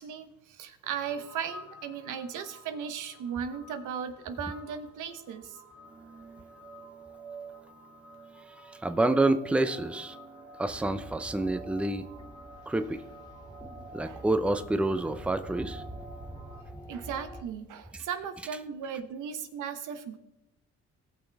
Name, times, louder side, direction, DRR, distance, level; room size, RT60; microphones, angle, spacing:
voice 1, 0.0-5.6 14.0-14.2 16.9-20.2, right 7 dB, 85° right, 8 dB, 1.0 m, -37 dB
sound 1, 0.8-16.6, right 2 dB, 45° right, 2.6 m, -49 dB
voice 2, 8.6-10.2 10.6-12.1 12.7-13.0 13.9-15.8, right 2 dB, 5° right, 10 dB, 0.6 m, -28 dB
sound 2, 10.7-17.4, right 1 dB, 15° left, 2.1 m, -46 dB
17.5 x 6.2 x 3.4 m, 0.94 s
cardioid pair, 90°, 30 cm